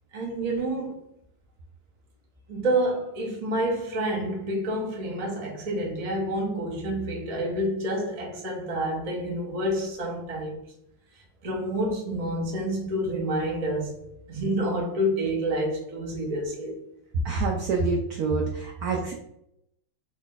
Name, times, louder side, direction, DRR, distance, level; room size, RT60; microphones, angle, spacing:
voice 1, 0.1-1.0 2.5-10.6 11.4-16.8, right 1 dB, 70° right, 0.3 m, -28 dB
voice 2, 17.2-19.1, right 4 dB, 85° right, 0.8 m, -26 dB
3.2 x 2.5 x 3.7 m
omnidirectional pair, 2.2 m